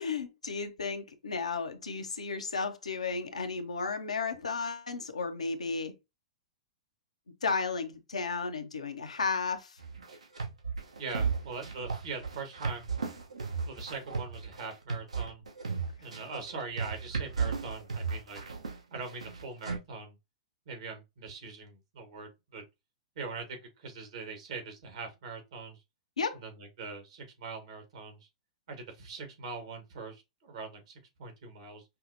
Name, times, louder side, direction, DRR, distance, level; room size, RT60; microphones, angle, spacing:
voice 1, 0.0-5.9 7.4-9.8 26.2-26.4, left 4 dB, 85° left, 0.6 m, -33 dB
sound 1, 9.8-19.8, right 5 dB, 85° right, 0.9 m, -34 dB
voice 2, 11.0-12.9 13.6-15.4 16.0-18.4 18.9-20.2 20.6-22.6 23.1-25.8 26.4-28.3 28.7-31.8, right 4 dB, 65° right, 1.4 m, -42 dB
5.5 x 2.0 x 2.6 m
hypercardioid pair, 110°, 3 cm